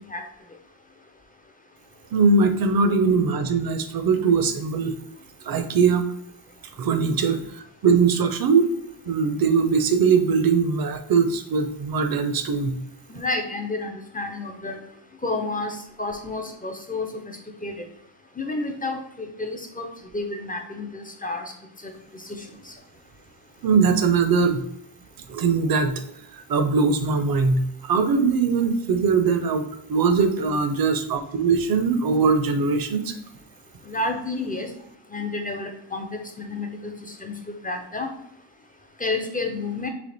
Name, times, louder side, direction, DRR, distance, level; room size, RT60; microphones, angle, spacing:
voice 1, 2.1-4.9 5.5-6.0 6.8-7.4 7.8-8.7 9.1-12.8 23.6-24.6 25.3-26.0 26.5-33.1, right 5 dB, 50° right, 8 dB, 0.5 m, -21 dB
voice 2, 13.1-14.8 15.2-17.0 17.6-17.7 18.4-19.9 20.1-21.4 33.9-34.7 35.1-36.1 36.4-36.9 37.2-37.3 37.6-38.1 39.0-39.9, left 2 dB, 20° left, 3 dB, 0.3 m, -30 dB
3.3 x 2.8 x 3.9 m, 0.75 s
wide cardioid pair, 160°, 48 cm